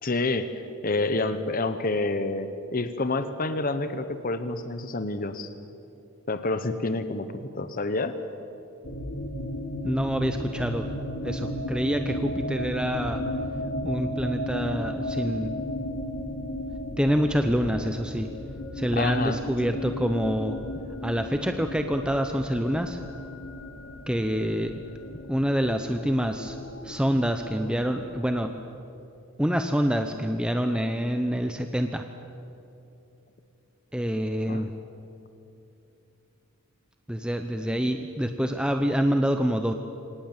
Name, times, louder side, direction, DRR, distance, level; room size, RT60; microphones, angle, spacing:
voice 1, 0.0-5.5 6.3-8.2 18.9-19.4 34.5-34.6, left 2 dB, 40° left, 10 dB, 1.0 m, -28 dB
sound 1, 8.8-28.7, left 1 dB, 55° left, 2.9 m, -35 dB
voice 2, 9.8-10.8 11.2-13.2 13.8-15.5 17.0-18.3 18.7-20.6 21.0-23.0 24.1-24.7 25.3-26.6 26.8-28.5 29.4-32.0 33.9-34.7 37.1-39.7, equal, 5° right, 6 dB, 0.7 m, -26 dB
25.5 x 19.0 x 7.4 m, 2.7 s
head